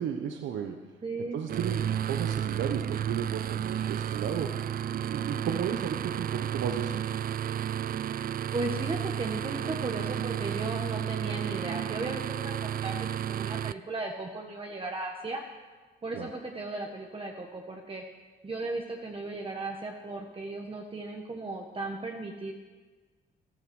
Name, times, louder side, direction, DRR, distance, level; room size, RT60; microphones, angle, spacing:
voice 1, 0.0-0.9 1.2-7.0 16.1-16.3, right 8 dB, 75° right, 5 dB, 1.0 m, -34 dB
voice 2, 1.0-1.4 8.5-15.4 16.0-18.0 18.4-22.5, right 2 dB, 25° right, 1 dB, 1.5 m, -36 dB
sound 1, 1.5-13.7, right 10 dB, 50° right, 0.4 m, -32 dB
14.0 x 13.0 x 6.4 m, 1.4 s
cardioid pair, 90°, 20 cm